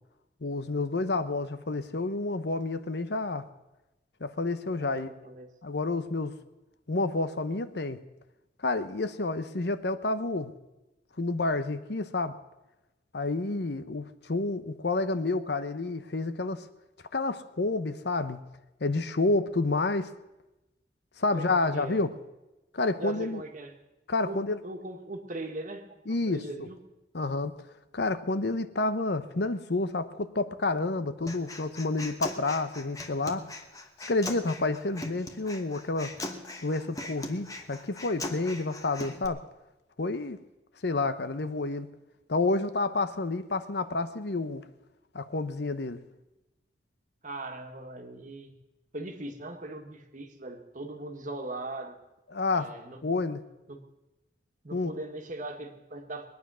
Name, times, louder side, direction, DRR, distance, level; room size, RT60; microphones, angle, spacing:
voice 1, 0.4-3.5 4.2-5.1 5.6-6.3 6.9-8.0 8.6-10.5 11.2-12.4 13.1-16.7 17.1-18.4 18.8-20.1 21.2-22.2 22.7-23.4 24.1-24.6 26.1-26.7 27.1-27.6 27.9-33.5 34.1-36.1 36.6-39.4 40.0-40.4 40.8-41.9 42.3-44.7 45.1-46.0 52.3-52.7 53.0-53.4 54.7-54.9, left 3 dB, 65° left, 11 dB, 0.8 m, -29 dB
voice 2, 4.8-5.5 21.3-22.0 23.0-23.7 24.2-26.8 47.2-48.5 48.9-52.0 52.5-53.2 53.7-53.8 54.6-56.3, right 2 dB, 45° right, 4 dB, 1.7 m, -40 dB
Human voice, 31.3-39.3, left 2 dB, 20° left, 1.2 m, -40 dB
22.0 x 9.5 x 6.2 m, 1.0 s
head